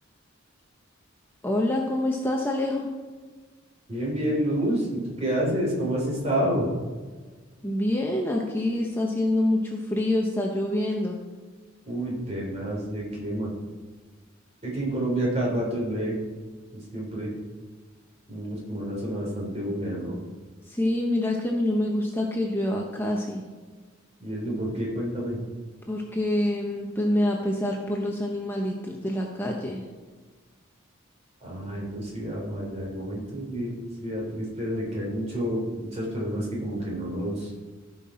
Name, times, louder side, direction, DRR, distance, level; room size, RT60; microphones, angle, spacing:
voice 1, 1.4-2.9 7.6-11.2 20.7-23.4 25.9-29.8, left 1 dB, 10° left, 0 dB, 0.8 m, -26 dB
voice 2, 3.9-6.7 11.9-13.5 14.6-16.2 16.9-17.3 18.3-20.2 24.2-25.4 31.4-37.5, right 1 dB, 35° right, -3 dB, 3.3 m, -29 dB
15.5 x 5.6 x 4.3 m, 1.4 s
head